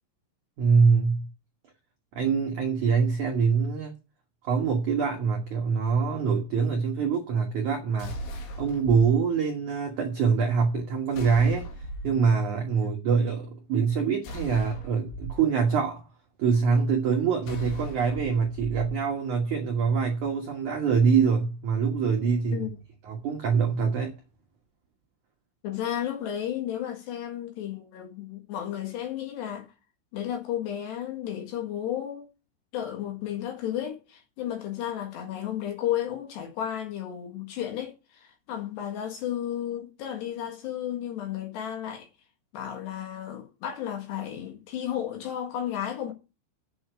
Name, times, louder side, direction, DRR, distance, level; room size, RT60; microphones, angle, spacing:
voice 1, 0.6-1.3 2.2-3.9 4.5-8.1 8.6-11.7 12.0-16.0 16.4-22.7 23.1-24.1, right 5 dB, 70° right, 1.8 m, -24 dB
sound 1, 8.0-9.1 11.1-12.2 14.2-15.3 17.4-18.9, right 1 dB, 85° left, 4.7 m, -37 dB
voice 2, 25.6-29.7 30.1-32.3 32.7-42.1 42.5-46.1, left 10 dB, 65° left, 3.6 m, -33 dB
8.6 x 6.6 x 7.9 m
omnidirectional pair, 5.8 m